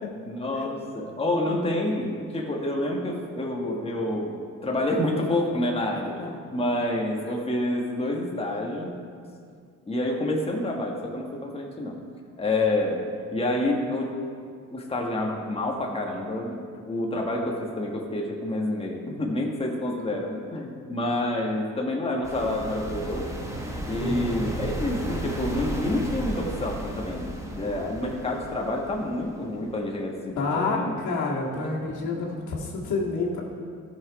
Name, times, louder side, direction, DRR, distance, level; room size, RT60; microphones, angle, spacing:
voice 1, 0.3-8.9 9.9-12.0 12.4-13.0 13.3-14.1 14.7-23.4 23.9-30.9 31.5-31.7 32.0-32.2, left 1 dB, 20° left, -1 dB, 1.4 m, -28 dB
sound 1, 22.2-29.9, right 1 dB, 10° right, 1.5 m, -34 dB
voice 2, 24.0-24.3 30.4-33.4, left 3 dB, 75° left, -3 dB, 2.1 m, -29 dB
14.0 x 6.2 x 4.8 m, 2.2 s
cardioid pair, 90°, 30 cm